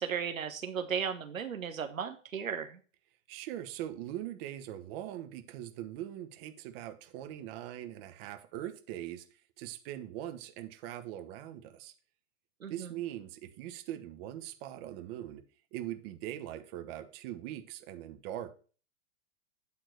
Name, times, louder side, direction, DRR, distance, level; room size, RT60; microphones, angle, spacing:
voice 1, 0.0-2.8 12.6-12.7, right 7 dB, 85° right, 1.1 m, -35 dB
voice 2, 3.3-11.9 12.7-15.4 15.7-18.5, right 12 dB, 45° right, 1.2 m, -41 dB
9.4 x 3.8 x 6.4 m
hypercardioid pair, 105°, 39 cm